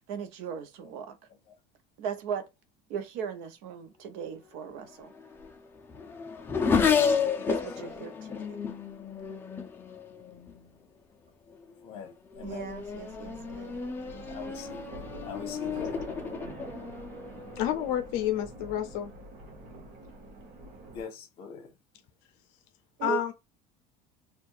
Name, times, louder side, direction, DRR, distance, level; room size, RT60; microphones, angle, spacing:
voice 1, 0.1-1.2 2.0-2.5 2.9-5.1 7.1-7.2 7.5-8.6 12.4-13.8 23.0-23.2, right 7 dB, 70° right, 0.7 m, -37 dB
Race car auto racing / Accelerating revving vroom, 4.8-10.7 11.5-11.9 12.3-18.2, left 6 dB, 15° left, 0.5 m, -32 dB
voice 2, 11.8-12.7 14.3-14.8 15.2-16.0 20.9-21.7, left 6 dB, 40° left, 1.2 m, -43 dB
sound 1, 12.3-21.0, right 1 dB, 45° right, 1.0 m, -46 dB
voice 3, 17.6-19.1 23.0-23.3, left 11 dB, 60° left, 0.5 m, -29 dB
4.5 x 2.4 x 2.5 m
cardioid pair, 175°, 15 cm